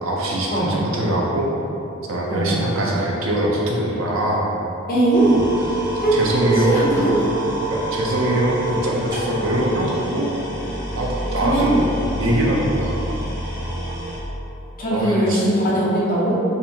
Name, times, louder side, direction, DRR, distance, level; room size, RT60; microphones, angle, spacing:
voice 1, 0.0-1.5 2.1-4.5 5.3-5.5 6.1-6.8 7.7-10.3 11.0-13.0 13.6-13.7 14.9-15.4, right 1 dB, 70° right, -3 dB, 0.6 m, -22 dB
voice 2, 4.9-5.3 6.0-7.2 11.4-11.7 14.8-16.3, right 1 dB, 45° left, -6 dB, 0.7 m, -20 dB
sound 1, 5.1-14.2, right 1 dB, 20° right, 0.9 m, -27 dB
4.1 x 2.5 x 2.8 m, 2.8 s
head